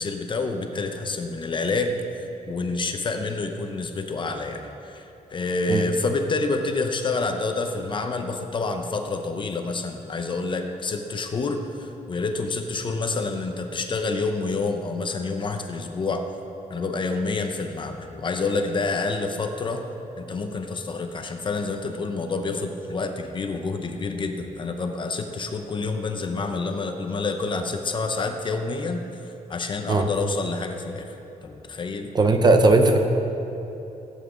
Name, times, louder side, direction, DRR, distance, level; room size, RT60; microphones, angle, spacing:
voice 1, 0.0-2.0 2.5-16.2 16.7-19.9 20.2-31.2 31.4-32.1, left 3 dB, 35° left, 5 dB, 0.7 m, -28 dB
voice 2, 32.1-33.0, right 2 dB, 30° right, 5 dB, 0.7 m, -17 dB
16.0 x 8.2 x 3.8 m, 3.0 s
wide cardioid pair, 170°, 14 cm